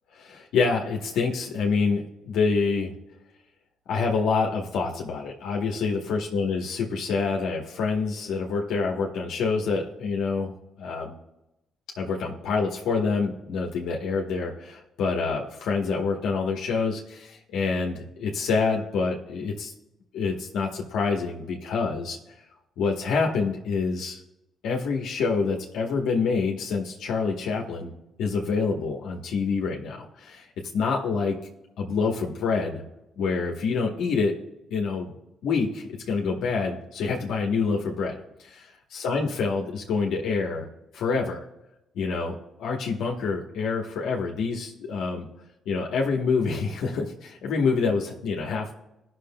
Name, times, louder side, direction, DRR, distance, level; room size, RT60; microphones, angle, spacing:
voice 1, 0.2-2.9 3.9-10.5 10.8-11.1 12.0-19.7 20.1-22.2 22.8-24.2 24.6-27.9 28.2-30.5 30.7-31.4 31.8-32.8 33.2-34.4 34.7-35.1 35.4-40.7 40.9-41.5 41.9-42.3 42.6-45.3 45.7-48.7, left 4 dB, 85° left, -1 dB, 1.0 m, -27 dB
18.5 x 6.2 x 2.2 m, 0.90 s
cardioid pair, 90°, 0 cm